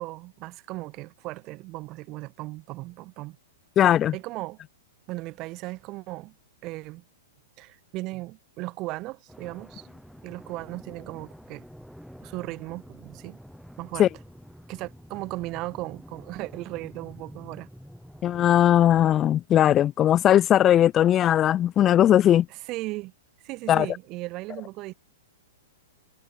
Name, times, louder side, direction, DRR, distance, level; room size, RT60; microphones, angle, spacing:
voice 1, 0.0-3.4 4.1-4.6 5.1-6.3 6.6-7.0 7.6-9.9 10.2-11.6 12.2-13.4 13.8-14.1 14.7-17.7 22.5-23.1 23.4-24.9, right 20 dB, 35° right, 3.0 m, -36 dB
voice 2, 3.8-4.1 14.0-14.1 18.2-22.5 23.7-23.9, left 11 dB, 25° left, 0.4 m, -19 dB
sound 1, 9.3-19.3, equal, ahead, 6.3 m, -48 dB
hypercardioid pair, 130°, 0 cm